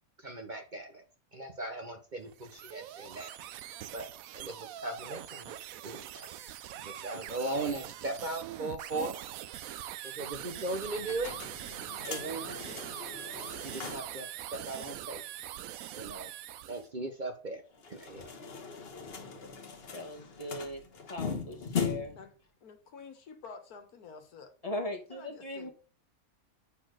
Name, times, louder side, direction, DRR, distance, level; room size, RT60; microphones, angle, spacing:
voice 1, 0.2-1.0 1.3-3.3 3.9-4.1 4.3-9.2 10.0-11.3 12.1-12.6 13.6-15.2 15.9-16.3 16.7-17.6 17.9-18.3, right 2 dB, 40° right, 0.8 m, -38 dB
sound 1, 2.2-16.9, right 12 dB, 75° right, 1.0 m, -43 dB
sound 2, 11.0-14.2 14.5-14.6 14.9-15.0 17.7-22.3, left 6 dB, 45° left, 1.3 m, -39 dB
voice 2, 19.9-20.8 21.1-22.1 24.6-25.7, left 1 dB, 25° left, 1.7 m, -39 dB
voice 3, 22.6-24.5 25.1-25.7, left 5 dB, 90° left, 1.7 m, -49 dB
8.3 x 4.2 x 6.2 m
omnidirectional pair, 1.5 m